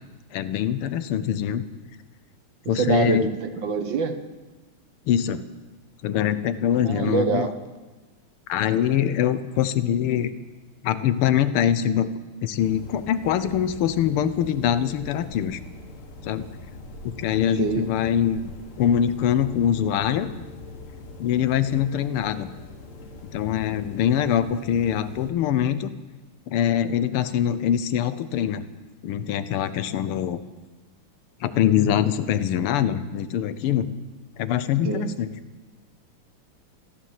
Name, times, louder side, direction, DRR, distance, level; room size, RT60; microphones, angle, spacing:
voice 1, 0.3-1.6 2.7-3.3 5.1-5.4 6.0-7.5 8.5-10.3 10.8-12.1 12.4-15.6 16.2-16.5 17.0-18.4 18.8-20.3 21.2-22.5 23.2-25.9 26.5-28.6 29.0-30.4 31.4-33.9 34.4-35.3, left 9 dB, 85° left, 13 dB, 1.7 m, -23 dB
voice 2, 2.7-4.2 6.7-7.5 17.6-17.9 34.8-35.1, right 5 dB, 60° right, 8 dB, 1.7 m, -25 dB
sound 1, 12.6-25.3, left 2 dB, 40° left, 1.4 m, -42 dB
14.5 x 13.0 x 7.4 m, 1.2 s
omnidirectional pair, 2.4 m